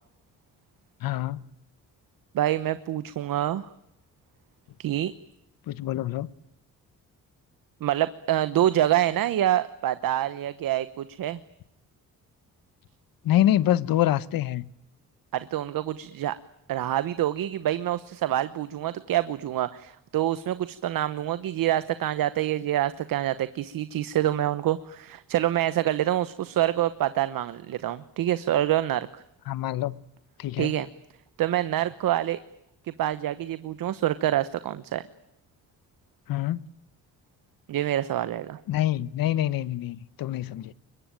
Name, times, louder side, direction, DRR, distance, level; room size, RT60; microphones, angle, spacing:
voice 1, 1.0-1.4 5.7-6.3 13.2-14.7 29.5-30.0 30.4-30.7 36.3-36.6 38.7-40.7, left 13 dB, 85° left, 1.0 m, -25 dB
voice 2, 2.3-3.7 4.8-5.1 7.8-11.4 15.3-16.3 16.7-29.2 30.6-30.9 31.4-32.4 32.8-35.0 37.7-38.6, right 12 dB, 75° right, 1.0 m, -26 dB
24.0 x 22.5 x 9.1 m
cardioid pair, 95°, 34 cm